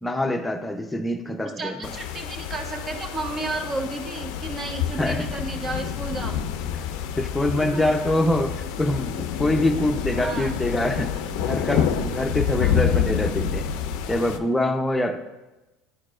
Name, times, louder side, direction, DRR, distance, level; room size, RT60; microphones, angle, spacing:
voice 1, 0.0-1.9 5.0-5.3 7.2-13.7 14.1-15.2, left 1 dB, 10° left, 5 dB, 0.7 m, -25 dB
voice 2, 1.4-6.4 7.4-7.8 10.1-10.5 12.6-12.8, right 2 dB, 30° right, 4 dB, 1.1 m, -33 dB
sound 1, 1.8-14.4, left 8 dB, 75° left, 0.5 m, -28 dB
10.5 x 4.6 x 2.5 m, 1.1 s
supercardioid pair, 95°, 0 cm